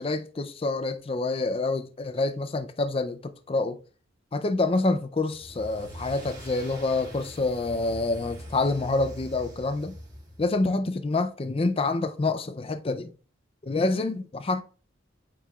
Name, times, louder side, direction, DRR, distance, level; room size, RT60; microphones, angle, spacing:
voice 1, 0.0-3.8 4.3-10.0 10.4-13.1 13.6-14.6, left 3 dB, 30° left, 0.4 m, -27 dB
sound 1, 5.3-10.6, equal, 20° right, 2.0 m, -43 dB
8.9 x 4.6 x 2.3 m
head